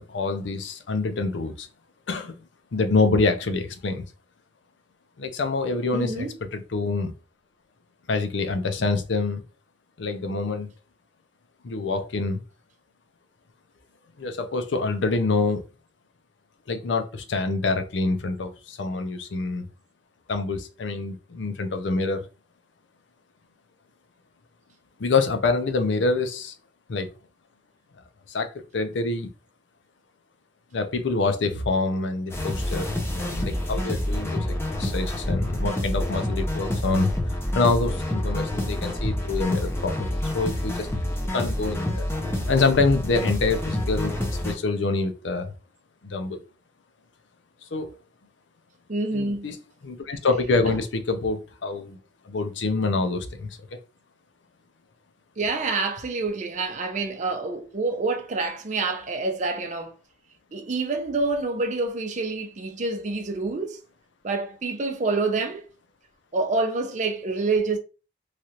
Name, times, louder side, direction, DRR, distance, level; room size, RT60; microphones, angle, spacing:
voice 1, 0.0-1.7 2.1-2.3 2.7-4.0 5.2-6.3 6.5-7.1 8.1-9.4 10.0-10.7 11.6-12.4 14.2-15.6 16.7-19.6 20.3-22.2 25.0-26.5 26.9-27.1 28.3-29.3 30.7-37.1 37.5-39.9 40.3-40.9 41.3-42.1 42.5-44.2 44.4-45.5 46.0-46.4 47.7-47.9 49.1-49.6 49.8-52.0 52.3-53.6, left 3 dB, 85° left, 0.5 m, -26 dB
voice 2, 5.9-6.3 48.9-49.5 55.4-59.9 60.5-63.8 64.2-65.7 66.3-67.8, right 3 dB, 40° right, 0.5 m, -27 dB
sound 1, 32.3-44.5, left 1 dB, 15° left, 0.6 m, -28 dB
3.2 x 2.4 x 2.8 m
head